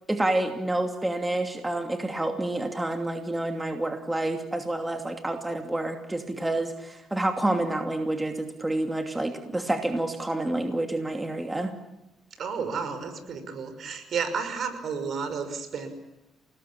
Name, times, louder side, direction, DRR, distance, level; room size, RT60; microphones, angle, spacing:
voice 1, 0.1-11.7, right 1 dB, 15° right, 5 dB, 2.7 m, -28 dB
voice 2, 12.4-15.9, right 5 dB, 60° right, 9 dB, 5.8 m, -32 dB
28.5 x 19.5 x 8.8 m, 0.93 s
cardioid pair, 90°, 0 cm